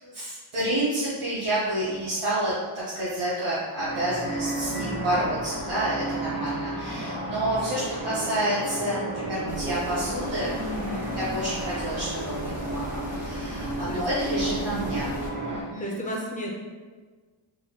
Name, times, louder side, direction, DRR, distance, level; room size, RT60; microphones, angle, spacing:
voice 1, 0.0-10.6 11.3-15.1 15.4-15.9, right 1 dB, 75° right, -10 dB, 1.2 m, -29 dB
sound 1, 3.8-15.6, right 1 dB, 45° right, 1.2 m, -32 dB
voice 2, 4.6-5.2 10.5-11.2 13.9-15.1 15.8-16.5, equal, 15° left, -1 dB, 0.6 m, -35 dB
sound 2, 9.5-15.3, equal, 5° right, 1.2 m, -39 dB
4.1 x 4.0 x 2.2 m, 1.4 s
wide cardioid pair, 125°, 49 cm